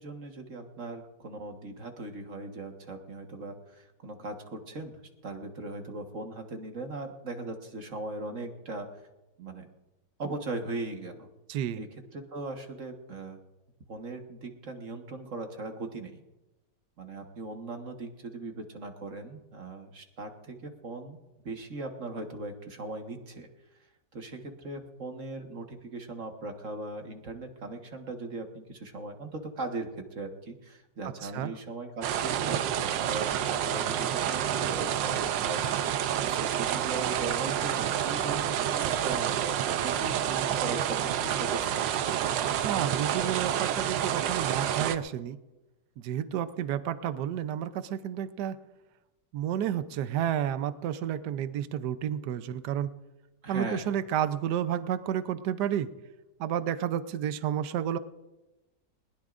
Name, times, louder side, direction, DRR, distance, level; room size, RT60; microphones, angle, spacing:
voice 1, 0.0-9.0 9.4-9.7 10.2-11.3 11.8-13.4 13.9-16.2 17.0-21.2 21.4-23.5 24.1-41.8 53.4-54.0, right 2 dB, 45° right, 4 dB, 1.7 m, -39 dB
voice 2, 11.5-11.8 31.2-31.5 42.6-45.4 46.0-48.6 49.3-52.9 53.5-55.9 56.4-58.0, right 10 dB, 70° right, 12 dB, 1.3 m, -31 dB
sound 1, 32.0-45.0, right 10 dB, 90° right, 1.4 m, -29 dB
21.0 x 19.5 x 2.5 m, 1.0 s
omnidirectional pair, 1.9 m